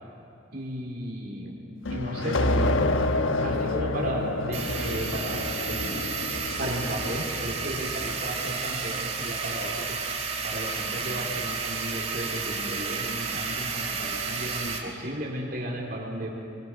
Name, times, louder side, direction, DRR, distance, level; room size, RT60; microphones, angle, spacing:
voice 1, 0.5-1.6 1.9-3.0 3.4-6.2 6.6-10.0 10.4-16.3, right 1 dB, 50° right, -1 dB, 4.0 m, -34 dB
sound 1, 1.8-8.2, left 2 dB, 90° left, 1.2 m, -28 dB
sound 2, 4.5-14.8, right 5 dB, 35° right, 2.9 m, -32 dB
27.5 x 23.5 x 6.4 m, 2.9 s
head